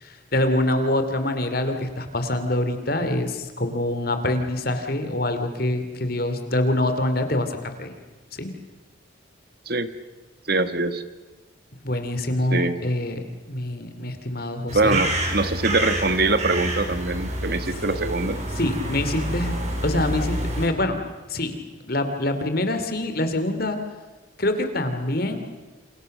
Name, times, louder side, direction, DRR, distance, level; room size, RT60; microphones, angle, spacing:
voice 1, 0.0-7.9 8.3-8.5 11.8-13.2 13.5-15.0 18.5-19.5 19.8-21.0 21.3-23.8 24.4-25.4, left 1 dB, 50° left, 8 dB, 2.8 m, -25 dB
voice 2, 10.5-11.0 12.5-12.8 14.7-18.4, right 3 dB, 50° right, 11 dB, 1.6 m, -23 dB
sound 1, 14.7-20.7, right 1 dB, 35° right, 5.4 m, -28 dB
28.5 x 28.0 x 6.6 m, 1.3 s
head